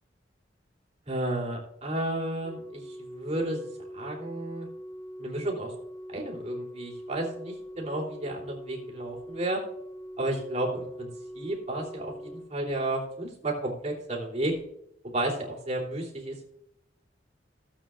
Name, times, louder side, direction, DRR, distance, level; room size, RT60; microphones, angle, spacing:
voice 1, 1.1-3.7 3.9-4.7 5.2-5.7 6.1-9.6 10.2-11.1 11.3-14.5 15.0-16.5, right 1 dB, 40° right, -2 dB, 3.1 m, -32 dB
Organ, 2.4-13.3 14.4-14.6, equal, 10° right, 1.3 m, -43 dB
17.0 x 8.6 x 2.5 m, 0.76 s
head